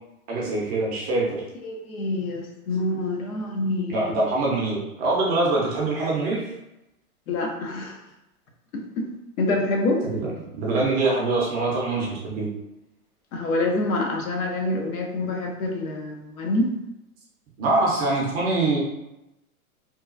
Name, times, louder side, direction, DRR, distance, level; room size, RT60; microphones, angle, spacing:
voice 1, 0.3-1.4 3.9-6.5 10.0-12.5 17.6-18.8, right 2 dB, 20° right, -4 dB, 0.5 m, -24 dB
voice 2, 1.6-4.1 7.3-8.0 8.7-8.8 9.4-10.0 13.3-16.7, left 2 dB, 70° left, 1 dB, 0.8 m, -26 dB
3.0 x 2.2 x 2.4 m, 0.92 s
hypercardioid pair, 125°, 44 cm